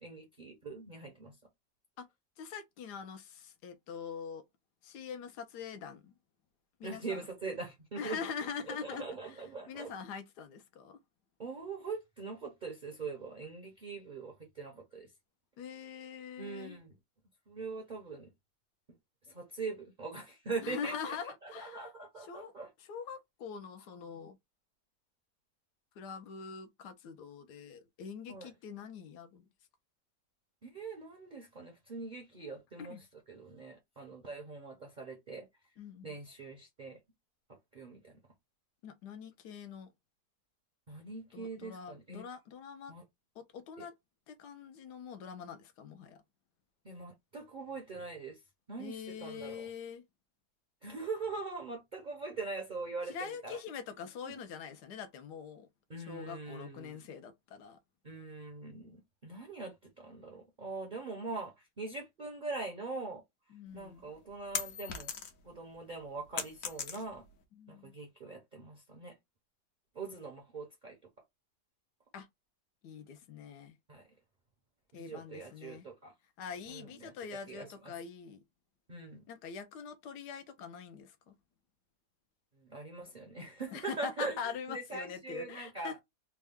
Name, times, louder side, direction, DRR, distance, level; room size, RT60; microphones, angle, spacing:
voice 1, 0.0-1.3 6.8-8.2 8.7-9.9 11.4-15.1 16.4-17.0 17.5-18.3 19.2-22.7 28.3-28.5 30.6-35.5 36.0-37.0 37.7-38.2 40.9-42.2 42.9-43.0 43.8-43.9 46.8-48.4 48.7-49.6 50.8-53.6 54.2-54.3 55.9-57.0 58.0-63.2 63.7-65.1 65.4-67.2 67.7-69.1 69.9-71.0 73.9-74.1 74.9-76.1 76.7-77.1 77.5-77.9 78.9-79.2 82.6-84.4 84.7-86.0, right 3 dB, 40° right, 0.6 m, -42 dB
voice 2, 2.4-4.4 4.8-6.1 6.8-7.3 8.0-11.0 15.6-16.8 20.6-21.8 22.2-22.5 22.8-24.4 26.0-29.5 32.8-33.0 35.8-36.1 38.8-39.9 41.3-42.9 43.4-43.9 44.3-46.2 48.8-50.0 53.1-55.7 56.1-57.8 63.5-64.1 67.5-67.9 72.1-72.3 72.8-73.7 74.9-75.9 76.4-78.4 79.3-81.4 83.7-86.0, left 6 dB, 75° left, 1.3 m, -44 dB
sound 1, 63.7-65.6 65.9-67.4, left 7 dB, 60° left, 1.1 m, -39 dB
3.5 x 2.2 x 3.4 m
omnidirectional pair, 1.8 m